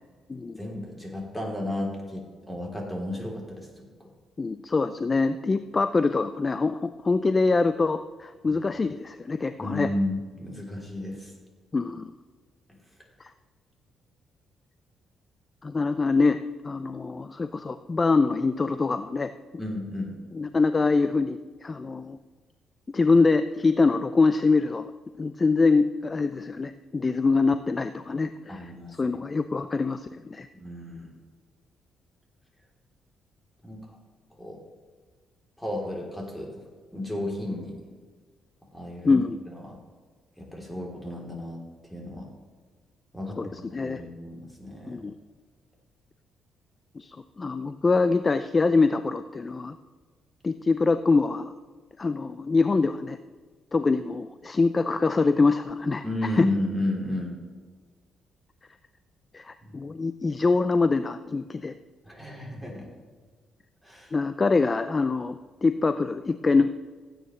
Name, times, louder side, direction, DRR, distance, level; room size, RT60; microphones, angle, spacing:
voice 1, 0.6-4.1 8.5-8.6 9.6-11.3 19.6-20.1 28.5-28.9 30.5-31.1 33.6-33.9 34.4-34.6 35.6-36.6 36.9-37.8 38.7-39.8 40.4-41.6 41.9-42.3 43.1-45.0 56.0-57.4 59.6-59.8 62.0-62.9 63.8-64.1, left 1 dB, 10° left, -1 dB, 3.3 m, -33 dB
voice 2, 4.4-9.9 11.7-12.1 13.2-13.3 15.6-19.3 20.3-22.2 22.9-24.9 25.2-28.7 29.0-30.5 39.0-39.4 43.4-44.0 44.9-45.1 47.0-49.8 50.4-51.5 52.0-53.2 53.7-56.0 56.4-56.5 59.3-61.7 64.1-66.7, left 3 dB, 30° left, 11 dB, 0.4 m, -24 dB
16.0 x 9.2 x 3.2 m, 1.5 s
cardioid pair, 90°, 0 cm